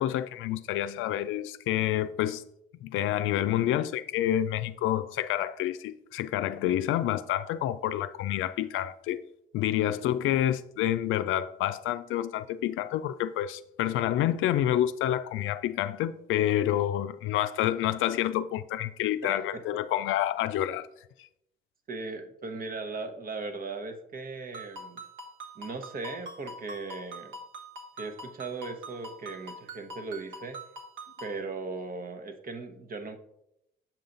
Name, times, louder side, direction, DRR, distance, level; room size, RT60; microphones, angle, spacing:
voice 1, 0.0-2.4 2.8-9.2 9.5-20.9, left 12 dB, 90° left, 0.4 m, -28 dB
voice 2, 19.2-19.6 21.9-25.0 25.6-27.3 28.0-30.6 31.2-33.2, right 3 dB, 45° right, 1.0 m, -38 dB
Ringtone, 24.5-31.4, right 1 dB, 70° right, 1.3 m, -44 dB
7.5 x 5.6 x 3.9 m
cardioid pair, 90°, 20 cm